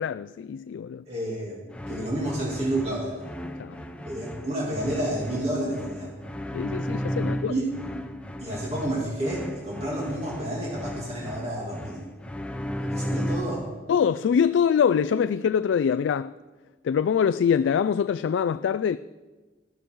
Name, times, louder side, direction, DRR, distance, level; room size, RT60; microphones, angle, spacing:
voice 1, 0.0-1.0 3.6-3.8 6.5-7.5 13.9-16.3 16.8-19.0, left 7 dB, 85° left, 0.3 m, -24 dB
voice 2, 1.1-3.2 4.0-6.1 7.5-7.7 8.4-12.0 12.8-13.6, right 1 dB, 35° right, 2.5 m, -30 dB
sound 1, 1.7-13.7, equal, 5° left, 0.6 m, -35 dB
13.5 x 12.5 x 4.6 m
head